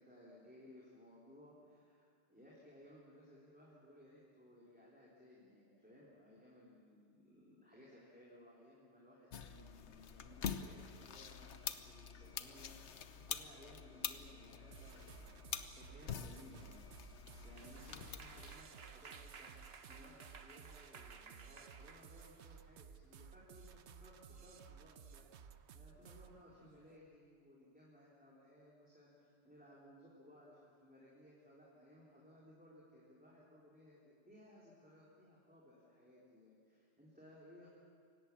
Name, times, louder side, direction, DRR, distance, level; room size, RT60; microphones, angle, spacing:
voice 1, 0.0-16.8 17.4-25.2 25.7-37.7, left 1 dB, 5° right, -7 dB, 3.8 m, -61 dB
sound 1, 9.3-18.6, left 7 dB, 85° left, 1.2 m, -46 dB
sound 2, 14.7-26.4, right 7 dB, 80° right, 1.1 m, -57 dB
sound 3, 17.3-23.8 24.2-24.5 24.9-26.1 26.5-27.0, right 5 dB, 65° right, 1.4 m, -59 dB
25.5 x 18.0 x 7.3 m, 2.2 s
omnidirectional pair, 1.1 m